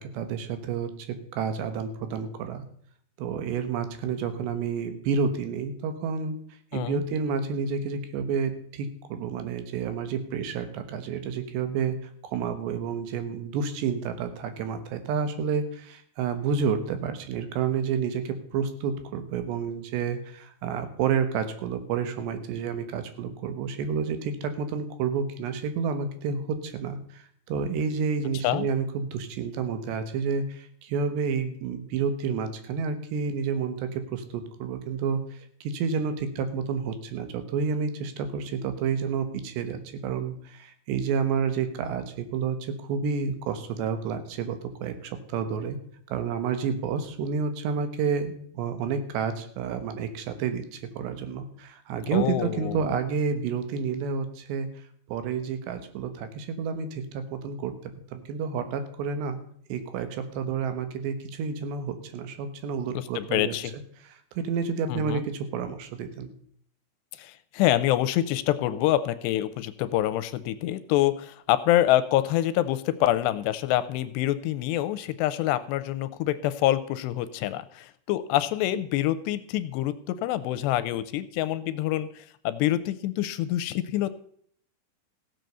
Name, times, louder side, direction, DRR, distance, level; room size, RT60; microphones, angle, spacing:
voice 1, 0.0-2.6 3.2-6.4 6.7-12.0 12.2-35.2 35.6-45.8 46.1-54.7 55.1-57.7 58.1-59.4 59.7-63.5 64.4-66.3, right 6 dB, 75° right, 9 dB, 3.4 m, -30 dB
voice 2, 6.7-7.0 28.4-28.7 52.1-52.9 62.9-63.7 64.9-65.2 67.2-84.1, left 13 dB, 80° left, 14 dB, 2.7 m, -26 dB
15.5 x 7.7 x 6.7 m, 0.63 s
omnidirectional pair, 5.1 m